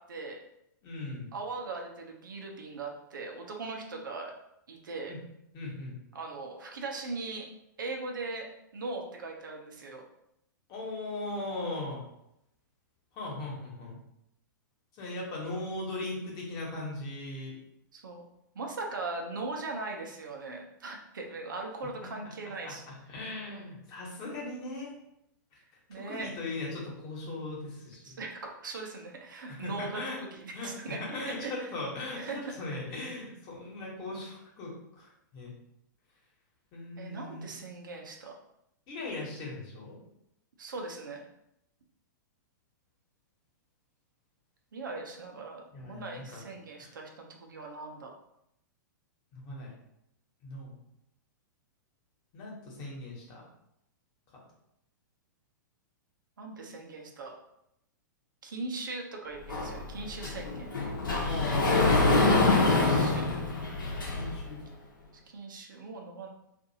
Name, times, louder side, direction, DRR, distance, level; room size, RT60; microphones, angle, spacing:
voice 1, 0.1-0.4 1.3-4.3 4.7-5.1 6.1-7.5 7.8-8.5 8.7-10.0 17.9-18.3 18.5-22.8 25.9-26.3 28.0-31.0 31.2-31.5 32.1-32.4 37.0-38.3 40.6-41.3 44.7-48.1 56.4-57.3 58.4-60.7 62.7-63.2 65.3-66.3, right 3 dB, 75° right, 1 dB, 0.6 m, -39 dB
voice 2, 0.8-1.3 5.1-5.2 5.5-6.0 10.7-12.0 13.1-14.0 15.0-17.5 22.4-24.9 26.0-28.2 29.5-30.2 30.5-35.5 36.7-37.5 38.9-40.0 45.7-46.4 46.8-46.9 49.3-49.7 50.4-50.8 52.3-53.5 54.3-54.4 61.2-62.0 62.8-63.4 64.1-64.6, left 2 dB, 35° left, -3 dB, 1.1 m, -39 dB
Sliding door, 59.5-64.5, left 3 dB, 80° left, 0.8 m, -26 dB
2.6 x 2.5 x 2.7 m, 0.79 s
hypercardioid pair, 110°, 11 cm